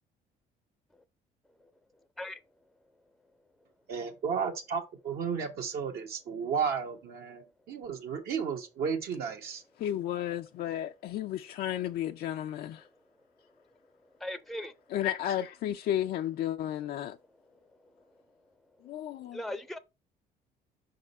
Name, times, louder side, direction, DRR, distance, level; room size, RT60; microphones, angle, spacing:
voice 1, 3.9-9.6, right 6 dB, 70° right, 1.3 m, -33 dB
voice 2, 9.8-12.8 14.9-17.2 18.8-19.4, left 11 dB, 65° left, 0.5 m, -33 dB
voice 3, 14.2-14.7 19.3-19.8, left 1 dB, ahead, 0.6 m, -38 dB
5.3 x 3.8 x 5.4 m
cardioid pair, 110°, 17 cm